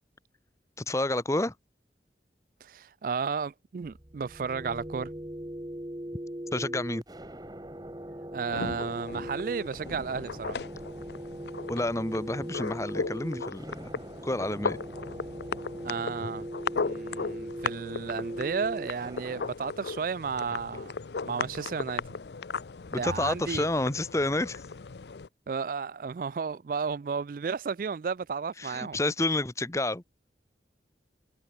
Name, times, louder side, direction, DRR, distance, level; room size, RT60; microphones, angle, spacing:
voice 1, 0.8-1.5 6.5-7.0 11.7-14.8 22.9-24.6 28.6-30.0, left 2 dB, 15° left, 0.9 m, -30 dB
voice 2, 2.6-5.1 8.3-10.6 15.8-16.5 16.7-20.9 21.2-22.0 23.0-23.7 25.5-29.0, right 5 dB, 50° right, 0.3 m, -33 dB
sound 1, 3.8-19.5, right 1 dB, 20° right, 1.4 m, -40 dB
sound 2, 8.5-25.3, left 4 dB, 70° left, 0.6 m, -37 dB
head